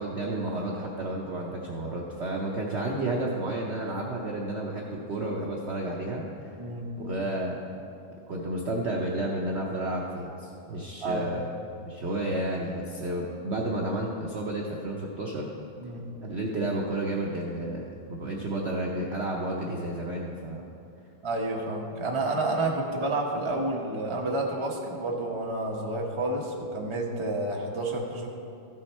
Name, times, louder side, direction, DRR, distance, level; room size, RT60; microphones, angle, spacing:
voice 1, 0.0-6.6 7.0-7.6 8.3-11.5 11.8-15.5 16.2-20.6, right 1 dB, 75° right, -2 dB, 0.6 m, -31 dB
voice 2, 6.6-6.9 11.0-11.3 15.8-16.1 21.2-28.3, right 2 dB, 30° right, -1 dB, 0.5 m, -30 dB
14.0 x 6.2 x 4.3 m, 2.7 s
omnidirectional pair, 2.2 m